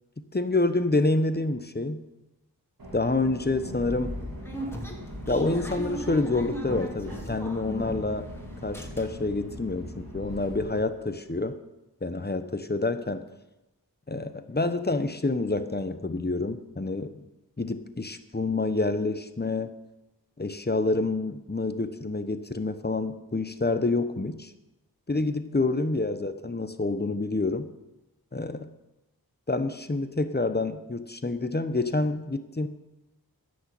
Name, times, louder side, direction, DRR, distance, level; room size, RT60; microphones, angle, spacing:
voice 1, 0.2-2.1 2.9-4.2 5.3-8.3 8.6-11.6 12.0-13.2 14.1-17.2 17.6-19.7 20.4-24.5 25.1-27.7 28.3-28.7 29.5-32.7, left 2 dB, 25° left, 10 dB, 1.0 m, -28 dB
Subway metro underground, 2.8-10.8, equal, 65° right, 2.6 m, -41 dB
sound 1, 3.8-8.3 8.5-9.4 9.8-9.9 10.1-10.3, equal, 5° left, 2.7 m, -37 dB
11.0 x 6.5 x 8.5 m, 0.97 s
cardioid pair, 40°, 38 cm